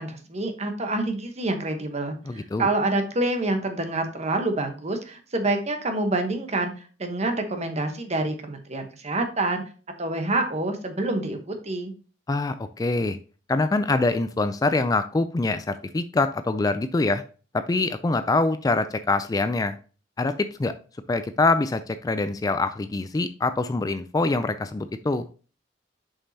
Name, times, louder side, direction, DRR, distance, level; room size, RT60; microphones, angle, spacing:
voice 1, 0.0-6.7 7.0-9.6 10.0-11.4 11.6-11.9, right 2 dB, 35° right, 6 dB, 1.1 m, -27 dB
voice 2, 2.2-2.7 12.3-13.2 13.5-17.2 17.5-19.8 20.2-20.7 21.1-25.2, left 3 dB, 20° left, 11 dB, 0.3 m, -24 dB
7.1 x 5.3 x 2.8 m, 0.37 s
head